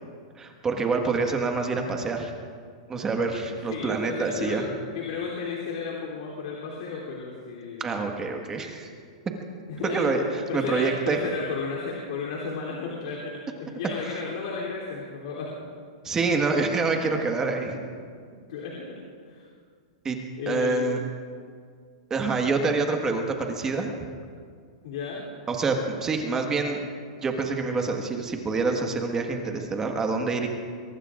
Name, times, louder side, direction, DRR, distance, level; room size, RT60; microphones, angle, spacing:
voice 1, 0.4-2.3 2.9-4.6 7.8-8.9 9.9-11.2 16.0-17.8 20.0-20.2 20.5-21.0 22.1-23.9 25.5-26.8 27.2-30.5, right 4 dB, 15° right, 3 dB, 1.5 m, -26 dB
voice 2, 3.7-8.2 9.7-10.2 10.5-13.4 13.7-15.5 17.0-17.2 18.5-18.9 19.2-19.5 20.4-21.0 24.8-25.2, left 4 dB, 65° left, -4 dB, 3.3 m, -33 dB
23.0 x 22.5 x 2.5 m, 2.1 s
supercardioid pair, 150°, 3 cm